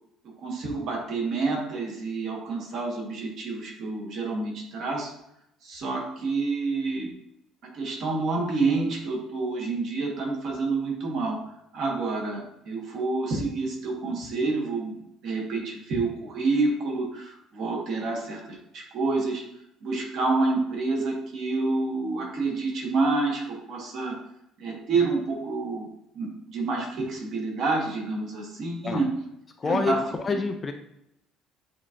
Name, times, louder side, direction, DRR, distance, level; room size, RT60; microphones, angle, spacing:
voice 1, 0.4-5.1 5.6-7.1 7.7-11.4 11.7-19.4 19.8-24.1 24.6-25.9 26.1-29.1 29.6-30.0, right 3 dB, 50° right, -1 dB, 1.3 m, -28 dB
voice 2, 29.6-30.7, left 4 dB, 20° left, 6 dB, 0.3 m, -27 dB
7.4 x 2.7 x 2.5 m, 0.81 s
cardioid pair, 155°, 0 cm